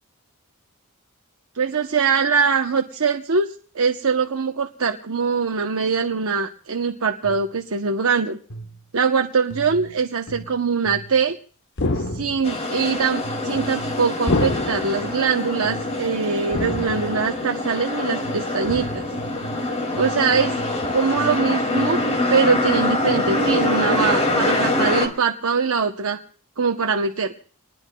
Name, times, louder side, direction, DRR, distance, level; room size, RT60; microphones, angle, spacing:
voice 1, 1.5-3.5 3.7-8.4 8.9-11.4 11.9-19.0 20.0-20.5 20.9-22.0 22.3-26.2 26.6-27.3, right 5 dB, 70° right, 4 dB, 0.8 m, -22 dB
sound 1, 7.2-7.6 8.5-8.9 9.5-11.3 12.1-12.5 13.2-15.3 15.6-16.1 16.6-17.4 18.2-22.2, right 3 dB, 80° left, 1.3 m, -39 dB
sound 2, 11.8-12.6 14.3-15.1 16.5-17.3 18.6-19.2 20.8-20.9, left 2 dB, 55° left, 0.9 m, -26 dB
sound 3, 12.4-25.1, left 2 dB, 30° left, 2.4 m, -24 dB
28.5 x 20.0 x 2.3 m, 0.43 s
head